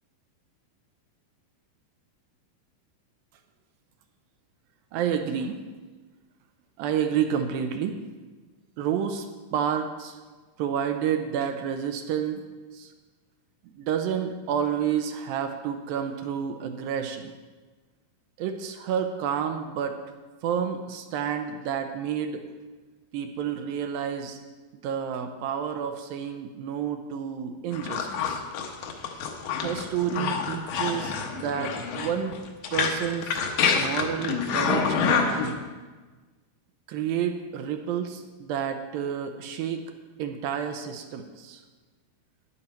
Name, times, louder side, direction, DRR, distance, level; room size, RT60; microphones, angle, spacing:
voice 1, 4.9-5.6 6.8-8.0 8.8-9.3 9.5-10.2 10.6-12.5 12.7-12.9 13.7-17.3 18.4-20.0 20.4-22.4 23.1-24.4 24.7-28.4 29.6-32.4 32.7-33.4 33.7-35.6 36.9-39.8 40.2-41.6, right 8 dB, 80° right, 6 dB, 2.3 m, -30 dB
sound 1, 27.7-35.5, left 6 dB, 70° left, 2.1 m, -27 dB
12.0 x 10.0 x 4.3 m, 1.3 s
omnidirectional pair, 4.5 m